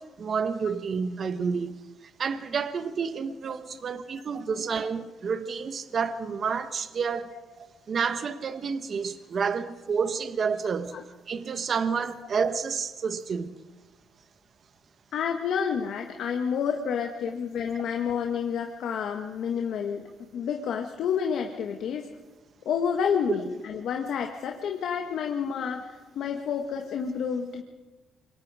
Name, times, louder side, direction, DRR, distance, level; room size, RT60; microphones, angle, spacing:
voice 1, 0.0-1.8 2.2-7.3 7.6-11.0 11.3-13.5, right 6 dB, 50° right, 1.3 m, -29 dB
voice 2, 15.1-22.1 22.6-27.6, left 7 dB, 75° left, 1.6 m, -29 dB
26.5 x 23.5 x 5.0 m
cardioid pair, 90°, 0 cm